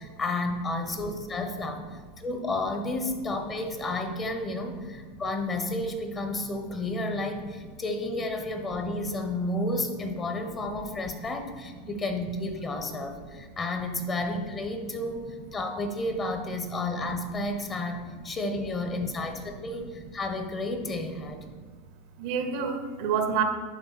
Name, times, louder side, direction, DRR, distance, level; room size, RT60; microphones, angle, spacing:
voice 1, 0.0-1.8 2.2-21.4, left 2 dB, 30° left, 5 dB, 1.1 m, -31 dB
voice 2, 12.7-13.4 16.5-17.1 19.4-19.7 20.8-20.9 21.3-21.7 22.2-23.4, right 6 dB, 60° right, 7 dB, 0.7 m, -32 dB
10.5 x 3.7 x 4.2 m, 1.5 s
hypercardioid pair, 95°, 0 cm